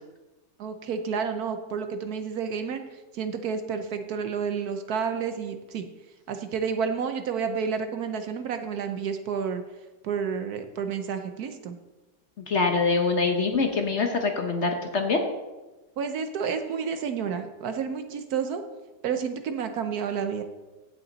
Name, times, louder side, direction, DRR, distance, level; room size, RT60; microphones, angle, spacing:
voice 1, 0.6-2.8 3.1-5.9 6.3-9.6 10.0-11.8 16.0-18.6 19.0-20.4, right 6 dB, 65° right, 8 dB, 1.2 m, -30 dB
voice 2, 12.5-15.2, left 4 dB, 50° left, 4 dB, 1.1 m, -24 dB
16.0 x 5.6 x 4.0 m, 1.1 s
omnidirectional pair, 1.9 m